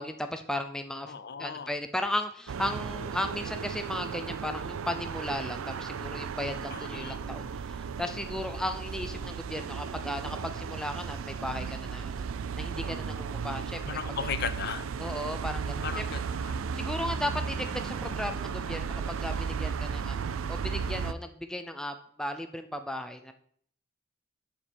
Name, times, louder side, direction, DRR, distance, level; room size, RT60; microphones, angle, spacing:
voice 1, 0.0-1.1 1.4-12.2 12.6-13.8 15.0-16.0 16.7-20.2 20.5-23.3, left 1 dB, 5° left, 7 dB, 0.3 m, -35 dB
voice 2, 1.1-1.7 6.7-7.2 13.8-14.9 15.8-16.7, left 6 dB, 50° left, 13 dB, 0.5 m, -36 dB
sound 1, 2.5-21.1, right 6 dB, 75° right, 0.4 m, -35 dB
sound 2, 17.4-21.2, equal, 30° right, 2.4 m, -50 dB
7.3 x 4.4 x 6.8 m, 0.62 s
head